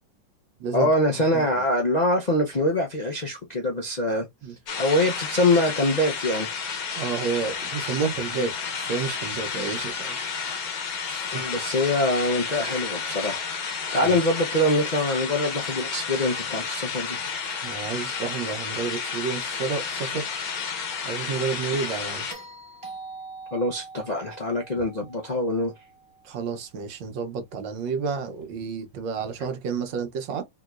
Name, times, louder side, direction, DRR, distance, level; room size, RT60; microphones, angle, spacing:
voice 1, 0.7-4.3 4.8-6.5 11.3-13.4 13.7-17.2 21.3-21.4 23.5-25.7, left 1 dB, 85° left, 0.3 m, -24 dB
sound 1, 4.7-22.3, left 6 dB, 60° left, 1.2 m, -31 dB
voice 2, 7.0-10.2 11.1-11.4 14.0-14.2 17.6-20.3 21.0-22.3 26.2-30.4, right 5 dB, 80° right, 1.5 m, -30 dB
sound 2, 22.3-26.6 28.8-28.9, right 3 dB, 20° right, 1.7 m, -43 dB
3.6 x 2.9 x 2.4 m
omnidirectional pair, 2.0 m